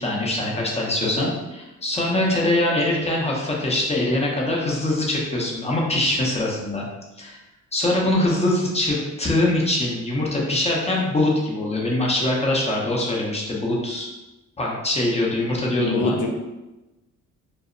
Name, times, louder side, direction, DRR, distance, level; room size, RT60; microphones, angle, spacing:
voice 1, 0.0-6.9 7.2-7.4 7.7-14.1 14.6-16.2, left 1 dB, 20° left, -3 dB, 0.7 m, -23 dB
voice 2, 15.6-16.3, left 3 dB, 90° left, 2 dB, 0.5 m, -25 dB
2.0 x 2.0 x 3.7 m, 1.0 s
cardioid pair, 90°, 30 cm